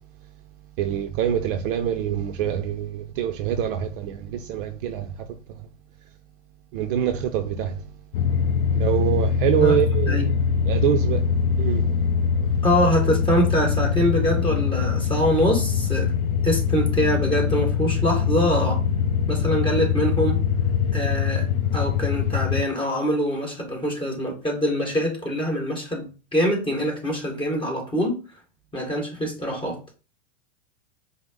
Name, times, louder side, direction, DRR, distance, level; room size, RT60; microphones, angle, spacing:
voice 1, 0.8-5.1 6.7-7.7 8.7-10.3 10.7-11.2 11.6-11.9, right 9 dB, 45° right, 0.5 m, -25 dB
sound 1, 8.1-22.6, left 6 dB, 50° left, 0.5 m, -23 dB
voice 2, 12.6-16.2 16.4-18.8 19.3-20.4 20.9-21.5 21.7-28.1 28.7-29.8, equal, 15° left, 1.6 m, -24 dB
4.9 x 2.0 x 3.6 m
hypercardioid pair, 110°, 39 cm